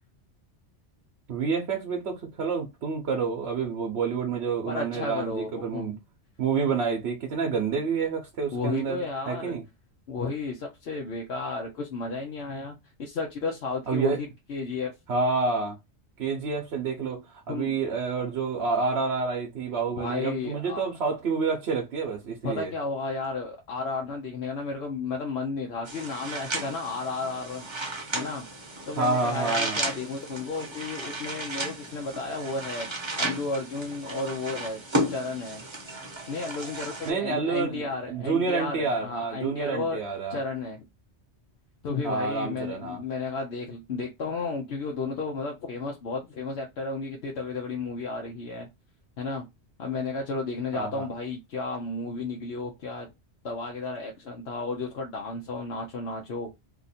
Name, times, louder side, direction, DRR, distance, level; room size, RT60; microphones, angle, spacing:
voice 1, 1.3-6.0 6.4-9.6 13.9-14.2 15.1-15.8 16.2-22.7 28.9-29.8 37.0-40.4 42.0-43.0 50.7-51.1, right 4 dB, 70° right, 1.0 m, -28 dB
voice 2, 4.7-6.0 8.5-9.5 10.1-14.9 17.5-17.8 20.0-20.8 22.4-27.6 28.1-28.5 28.9-32.9 33.2-34.8 35.1-35.6 36.3-40.0 40.3-40.9 41.8-48.7 49.2-49.5 49.8-53.1 53.4-56.5, left 3 dB, 70° left, 0.9 m, -33 dB
sound 1, 25.9-37.1, right 1 dB, 30° right, 0.8 m, -34 dB
2.8 x 2.5 x 4.1 m
omnidirectional pair, 1.2 m